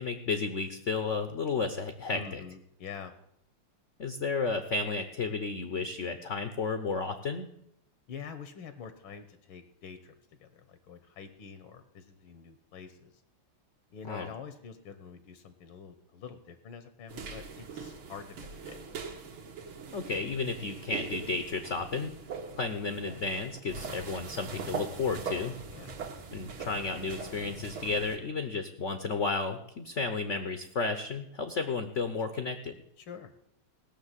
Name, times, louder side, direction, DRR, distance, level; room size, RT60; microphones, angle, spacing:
voice 1, 0.0-2.4 4.0-7.5 14.0-14.3 19.9-22.1 22.5-25.5 26.3-32.7, left 4 dB, 50° left, 8 dB, 0.9 m, -32 dB
voice 2, 2.1-3.1 8.1-13.2 13.9-18.8 25.2-25.4 25.7-26.0 33.0-33.3, left 6 dB, 75° left, 10 dB, 1.8 m, -46 dB
sound 1, 17.1-28.2, right 5 dB, 75° right, 2.4 m, -41 dB
17.0 x 6.6 x 8.2 m, 0.75 s
omnidirectional pair, 2.4 m